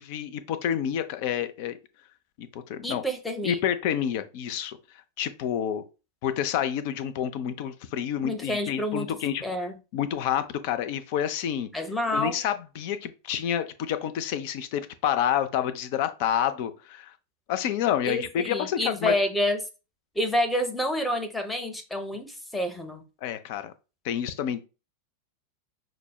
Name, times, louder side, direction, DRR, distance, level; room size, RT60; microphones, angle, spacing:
voice 1, 0.0-1.8 2.4-3.0 3.4-4.8 5.2-5.8 6.2-9.4 9.9-11.7 12.1-17.1 17.5-19.1 23.2-23.7 24.0-24.7, left 9 dB, 45° left, 0.4 m, -28 dB
voice 2, 2.8-3.6 8.2-9.7 11.7-12.4 18.0-19.6 20.2-23.0, left 1 dB, 5° left, 0.6 m, -28 dB
5.9 x 2.0 x 2.3 m
figure-of-eight pair, 90°, 0 cm